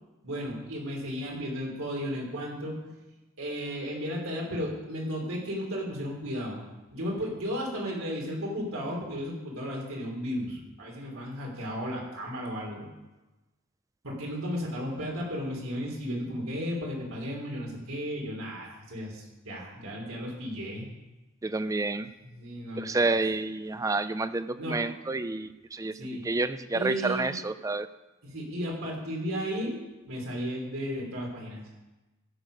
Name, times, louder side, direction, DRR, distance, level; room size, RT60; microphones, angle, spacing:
voice 1, 0.2-2.9 3.4-6.6 6.9-12.9 14.0-20.9 22.2-23.1 24.6-24.8 26.0-26.2 26.7-27.4 28.2-31.7, equal, 80° right, -1 dB, 3.2 m, -34 dB
voice 2, 21.4-22.1 22.8-25.9 26.2-27.9, right 3 dB, 15° right, 13 dB, 0.3 m, -29 dB
15.0 x 6.6 x 5.2 m, 1.1 s
head